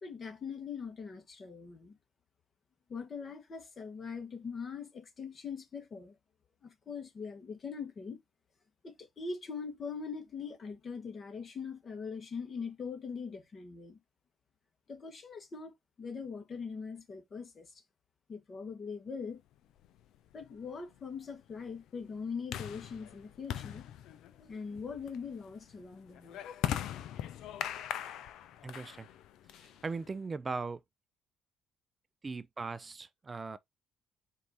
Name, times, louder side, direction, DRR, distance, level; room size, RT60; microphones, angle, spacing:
voice 1, 0.0-2.0 2.9-6.2 6.6-8.2 8.8-14.0 14.9-15.7 16.0-17.7 18.3-19.4 20.3-23.9 24.4-26.4, left 5 dB, 45° left, 1.5 m, -42 dB
sound 1, 19.8-30.2, left 11 dB, 70° left, 0.5 m, -41 dB
voice 2, 28.6-29.1 29.5-30.8 32.2-33.6, right 4 dB, 30° right, 0.4 m, -39 dB
4.5 x 2.7 x 4.1 m
hypercardioid pair, 60°, 0 cm